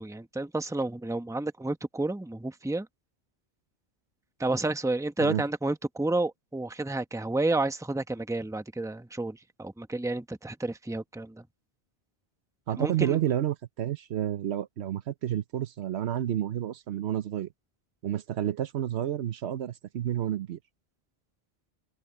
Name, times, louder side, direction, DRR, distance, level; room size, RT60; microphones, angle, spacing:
voice 1, 0.0-2.9 4.4-11.4 12.8-13.2, right 2 dB, 5° right, 0.9 m, -30 dB
voice 2, 12.7-17.5 18.0-20.6, right 11 dB, 80° right, 1.0 m, -30 dB
open air
omnidirectional pair, 1.1 m